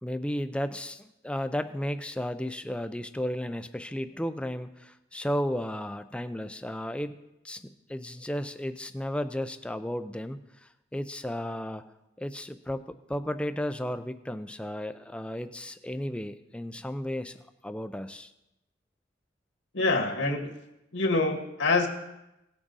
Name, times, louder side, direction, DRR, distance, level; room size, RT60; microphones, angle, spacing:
voice 1, 0.0-7.2 7.4-11.8 12.2-17.4 17.6-18.3, equal, 5° left, 10 dB, 0.4 m, -34 dB
voice 2, 19.7-20.5 20.9-21.9, left 3 dB, 75° left, 0 dB, 1.9 m, -25 dB
18.0 x 6.2 x 4.0 m, 0.92 s
head